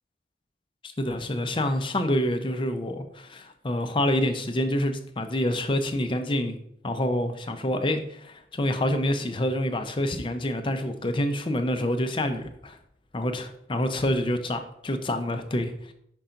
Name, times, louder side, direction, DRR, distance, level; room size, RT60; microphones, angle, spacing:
voice 1, 0.8-6.6 6.8-12.8 13.1-15.9, left 1 dB, 25° left, 7 dB, 0.5 m, -27 dB
5.4 x 3.8 x 5.6 m, 0.73 s
head